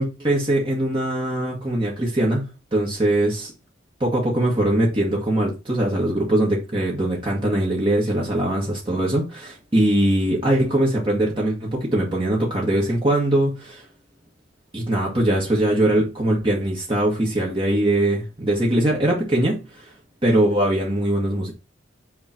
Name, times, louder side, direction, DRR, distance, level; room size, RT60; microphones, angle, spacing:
voice 1, 0.0-3.5 4.0-13.8 14.7-19.9 20.2-21.5, right 1 dB, 30° right, 1.7 m, -21 dB
8.4 x 3.3 x 4.4 m
head